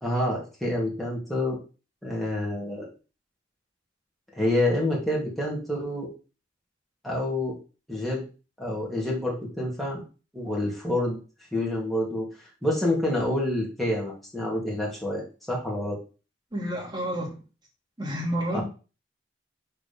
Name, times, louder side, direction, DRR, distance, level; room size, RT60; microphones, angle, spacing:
voice 1, 0.0-1.6 2.0-2.8 4.3-6.1 7.0-7.6 7.9-8.2 8.6-10.0 10.3-11.2 11.5-12.3 12.6-16.0 18.5-18.6, left 1 dB, ahead, -4 dB, 2.9 m, -27 dB
voice 2, 16.5-17.3 18.0-18.6, equal, 25° right, -2 dB, 3.0 m, -29 dB
6.9 x 4.9 x 5.5 m, 0.34 s
head